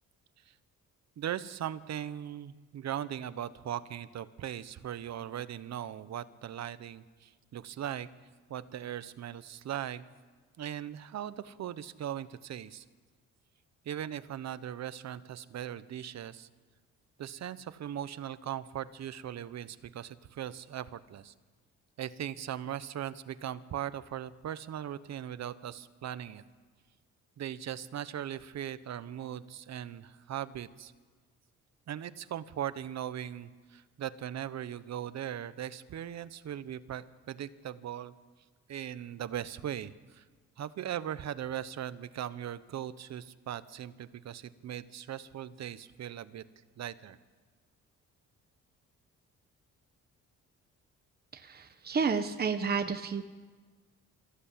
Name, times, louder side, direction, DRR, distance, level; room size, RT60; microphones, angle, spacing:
voice 1, 1.2-8.1 8.5-10.0 10.6-12.8 13.8-16.5 17.2-21.3 22.0-26.4 27.4-30.9 31.9-38.1 38.7-40.2 40.6-46.4 46.8-47.2, right 10 dB, 60° right, 14 dB, 1.1 m, -39 dB
voice 2, 51.3-53.3, right 5 dB, 30° right, 7 dB, 1.2 m, -31 dB
24.5 x 15.0 x 8.5 m, 1.4 s
cardioid pair, 90°, 30 cm